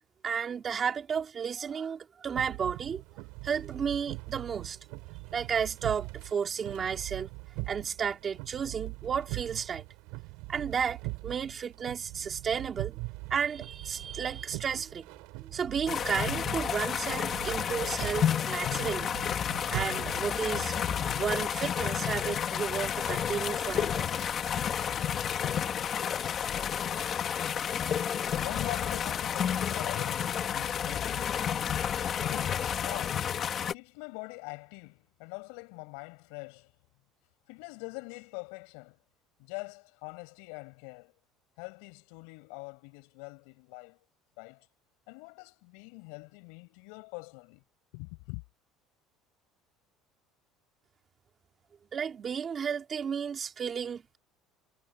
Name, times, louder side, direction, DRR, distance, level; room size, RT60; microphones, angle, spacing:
voice 1, 0.2-3.0 3.4-4.8 5.3-7.3 7.7-9.8 10.5-13.0 13.3-15.1 15.4-19.2 19.7-20.7 21.2-24.0 51.9-54.2, right 7 dB, 25° right, 3.2 m, -33 dB
sound 1, 2.4-21.3, right 28 dB, 75° right, 8.0 m, -42 dB
sound 2, 15.9-33.7, left 8 dB, 30° left, 1.3 m, -31 dB
voice 2, 28.2-31.6 32.2-36.7 37.5-39.0 39.4-41.1 41.6-44.0 44.4-44.7 45.1-47.6 47.9-48.4, left 33 dB, 85° left, 6.6 m, -44 dB
cardioid pair, 175°, 0 cm